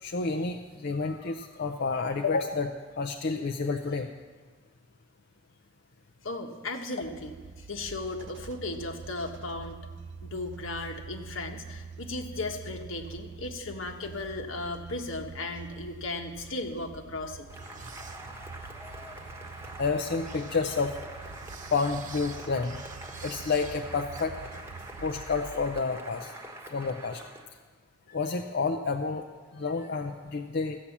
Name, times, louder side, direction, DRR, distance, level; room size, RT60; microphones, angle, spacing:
voice 1, 0.0-4.1 19.8-21.0 21.7-22.8 23.2-24.3 25.0-26.3 26.7-27.3 28.1-29.2 29.5-30.8, left 4 dB, 55° left, 5 dB, 0.6 m, -30 dB
voice 2, 6.2-9.9 10.2-17.5, left 2 dB, 80° left, 3 dB, 1.4 m, -36 dB
sound 1, 7.0-25.8, right 5 dB, 60° right, 0.5 m, -46 dB
Cheering / Applause, 17.5-27.5, right 1 dB, 15° right, 1.1 m, -45 dB
sound 2, 17.5-25.1, right 4 dB, 40° right, 0.9 m, -48 dB
14.5 x 8.5 x 7.2 m, 1.4 s
head